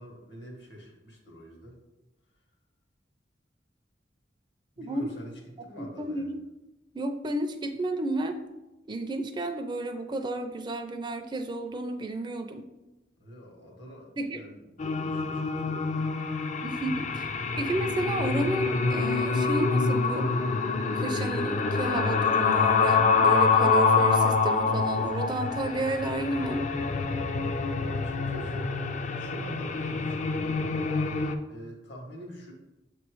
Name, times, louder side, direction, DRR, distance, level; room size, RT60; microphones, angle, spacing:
voice 1, 0.0-1.8 4.8-6.3 13.2-14.6 15.1-16.1 16.9-17.2 27.7-32.5, equal, 70° left, 0 dB, 1.5 m, -46 dB
voice 2, 4.8-5.1 6.0-6.4 6.9-8.4 8.9-12.7 14.2-14.4 16.6-17.3 17.6-20.3 20.8-26.7, right 2 dB, 25° right, 7 dB, 0.4 m, -31 dB
sound 1, 14.8-31.3, left 4 dB, 40° left, 0.4 m, -26 dB
6.7 x 3.0 x 4.6 m, 1.0 s
head